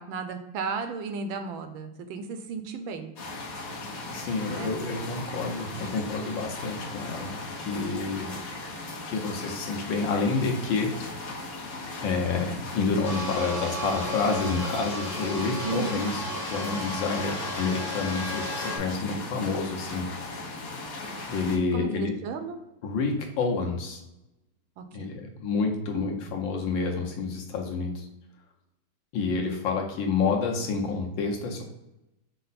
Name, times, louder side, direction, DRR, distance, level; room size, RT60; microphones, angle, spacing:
voice 1, 0.0-3.1 4.5-4.8 15.6-16.0 21.7-22.6 24.8-25.1 25.9-26.2, right 5 dB, 80° right, 7 dB, 1.3 m, -34 dB
sound 1, 3.2-21.6, left 2 dB, 55° left, 1.1 m, -38 dB
voice 2, 4.1-7.3 7.6-8.4 9.1-11.3 12.0-20.1 21.3-22.1 22.8-24.0 24.9-28.1 29.1-31.6, left 4 dB, 75° left, 1 dB, 1.5 m, -29 dB
sound 2, 13.0-18.8, left 1 dB, 40° left, 0.7 m, -34 dB
5.5 x 2.0 x 4.0 m, 0.91 s
omnidirectional pair, 2.2 m